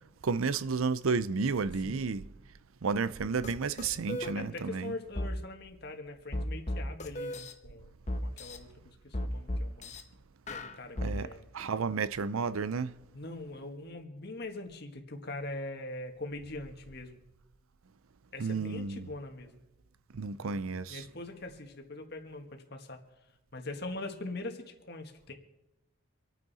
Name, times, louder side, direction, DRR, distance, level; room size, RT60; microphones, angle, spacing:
voice 1, 0.2-2.3 2.8-4.9 11.0-13.0 18.4-19.1 20.1-21.0, right 4 dB, 75° right, 0.5 m, -32 dB
sound 1, 3.4-3.5 3.8-4.3 5.2-5.3 6.3-7.5 8.1-8.6 9.1-10.0 10.5-11.1, left 1 dB, 35° left, 1.0 m, -34 dB
voice 2, 4.3-7.9 8.2-9.9 10.5-11.5 13.1-17.2 18.3-19.5 20.4-23.0 23.5-25.3, left 2 dB, 50° left, 1.6 m, -42 dB
26.5 x 9.3 x 4.2 m
head